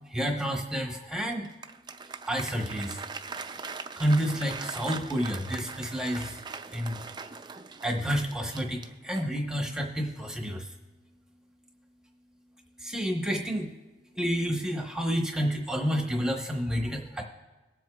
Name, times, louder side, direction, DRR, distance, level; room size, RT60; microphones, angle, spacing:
voice 1, 0.0-1.5 2.2-3.1 4.0-6.4 6.7-7.0 7.8-10.7 12.8-13.7 14.1-17.2, equal, 5° right, 1 dB, 0.9 m, -29 dB
Applause, 1.3-9.5, right 5 dB, 25° right, 0.4 m, -41 dB
21.5 x 7.7 x 2.3 m, 1.2 s
head